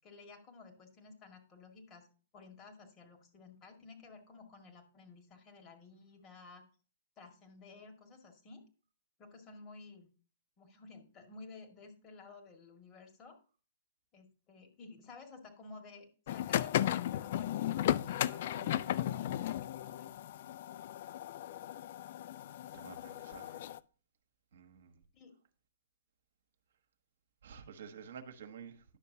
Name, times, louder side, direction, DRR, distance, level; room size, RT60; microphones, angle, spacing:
voice 1, 0.0-2.1 2.3-6.6 7.2-8.6 9.2-10.1 10.6-13.4 14.1-20.1 25.1-25.4, left 3 dB, 30° left, 2.0 m, -54 dB
sound 1, 16.3-23.8, left 12 dB, 55° left, 0.4 m, -35 dB
voice 2, 22.7-23.6 24.5-25.0 27.4-29.0, right 7 dB, 65° right, 1.1 m, -51 dB
10.5 x 6.6 x 2.7 m
figure-of-eight pair, 115°, 0 cm